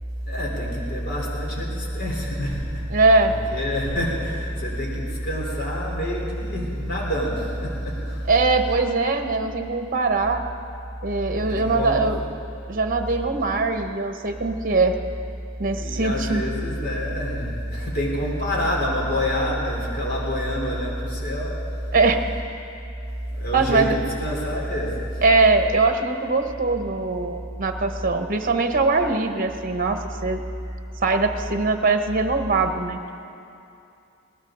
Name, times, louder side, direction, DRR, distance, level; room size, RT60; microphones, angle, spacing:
voice 1, 0.3-8.3 11.3-12.1 15.8-22.0 23.3-25.2, equal, 55° left, -3 dB, 3.7 m, -27 dB
voice 2, 2.9-3.3 8.3-10.4 11.0-12.2 12.7-14.9 15.6-16.4 21.9-22.2 23.5-24.0 25.2-30.4 31.0-33.1, right 3 dB, 45° right, 6 dB, 1.0 m, -21 dB
20.5 x 18.0 x 3.8 m, 2.6 s
head